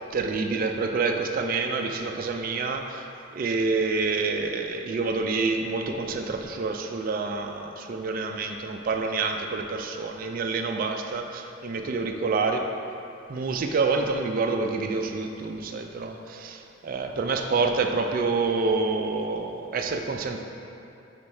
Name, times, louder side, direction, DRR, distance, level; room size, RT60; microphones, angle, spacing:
voice 1, 0.1-12.7 13.3-20.4, right 4 dB, 45° right, 4 dB, 0.3 m, -27 dB
5.2 x 4.2 x 4.7 m, 2.6 s
head